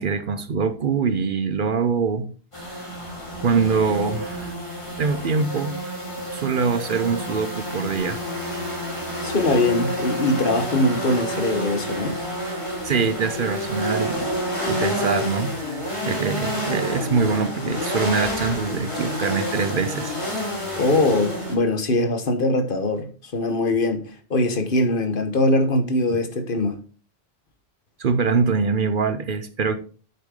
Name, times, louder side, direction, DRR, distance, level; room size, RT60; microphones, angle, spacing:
voice 1, 0.0-2.3 3.4-4.7 5.0-5.8 6.3-8.2 12.8-14.3 14.7-20.2 26.1-26.2 28.0-29.8, right 5 dB, 55° right, 0.8 m, -24 dB
sound 1, 2.5-21.5, equal, 25° left, 2.7 m, -29 dB
voice 2, 9.2-12.2 20.7-24.0 24.3-26.8, left 2 dB, 55° left, 1.3 m, -22 dB
8.5 x 6.8 x 3.7 m
omnidirectional pair, 1.1 m